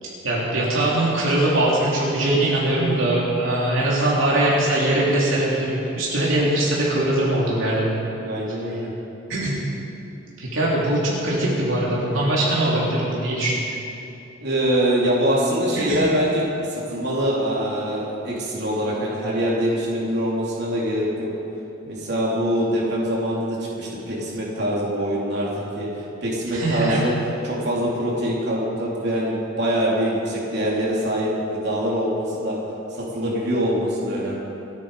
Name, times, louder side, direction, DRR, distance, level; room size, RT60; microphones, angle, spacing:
voice 1, 0.0-7.8 9.3-9.6 10.4-13.6 15.8-16.0 26.5-27.0, right 1 dB, 75° right, -6 dB, 3.0 m, -21 dB
voice 2, 8.0-8.9 14.4-16.4 16.9-21.3 21.8-27.1 27.4-32.6 32.9-34.4, equal, 55° right, -5 dB, 3.5 m, -24 dB
27.5 x 9.6 x 5.0 m, 2.9 s
head